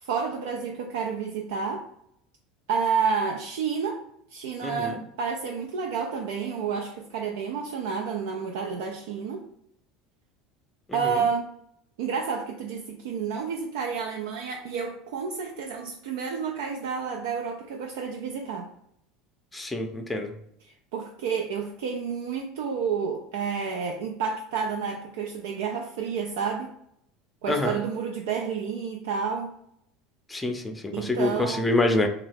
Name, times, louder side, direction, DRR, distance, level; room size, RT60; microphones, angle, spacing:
voice 1, 0.0-1.8 2.7-4.0 4.3-9.4 10.9-11.5 12.0-18.7 20.7-26.7 27.4-29.5 30.9-31.7, right 6 dB, 75° right, 1 dB, 0.3 m, -30 dB
voice 2, 4.6-5.0 10.9-11.2 19.5-20.3 27.5-27.8 30.3-32.1, left 2 dB, 10° left, 4 dB, 0.5 m, -26 dB
2.7 x 2.3 x 3.4 m, 0.74 s
hypercardioid pair, 85°, 0 cm